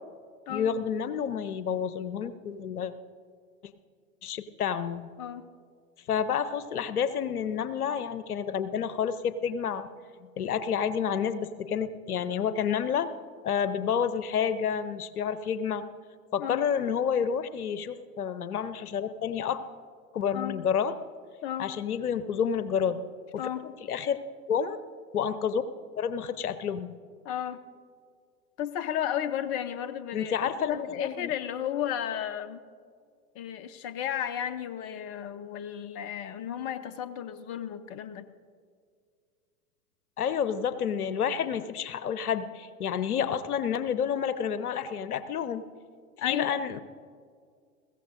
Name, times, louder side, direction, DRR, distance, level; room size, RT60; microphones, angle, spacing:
voice 1, 0.5-2.9 4.2-5.1 6.1-9.9 10.4-13.1 13.4-15.8 16.3-19.6 20.1-20.9 21.6-23.0 23.3-24.2 24.5-24.8 25.1-25.7 26.0-26.9 30.1-31.3 40.2-45.6 46.2-46.8, left 7 dB, 75° left, 13 dB, 0.8 m, -29 dB
voice 2, 27.2-27.6 28.6-30.3 30.6-32.6 33.3-38.2 46.2-46.6, left 10 dB, 30° left, 11 dB, 0.7 m, -33 dB
21.0 x 16.0 x 2.6 m, 2.1 s
figure-of-eight pair, 95°, 45 cm